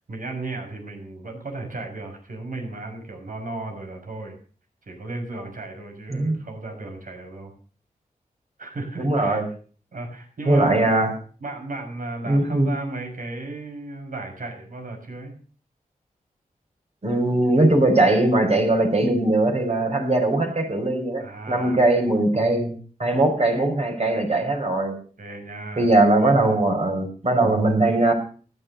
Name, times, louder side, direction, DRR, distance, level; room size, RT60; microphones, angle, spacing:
voice 1, 0.1-4.4 4.9-7.5 8.6-9.4 9.9-10.9 11.4-15.3 21.2-21.9 25.2-25.9 26.2-26.6, right 2 dB, 70° right, 3 dB, 6.3 m, -35 dB
voice 2, 9.0-9.5 10.5-11.1 12.3-12.7 17.0-22.7 23.0-25.0 25.8-28.1, right 2 dB, 45° right, 3 dB, 5.8 m, -20 dB
15.0 x 11.5 x 6.5 m, 0.41 s
wide cardioid pair, 75°, 15 cm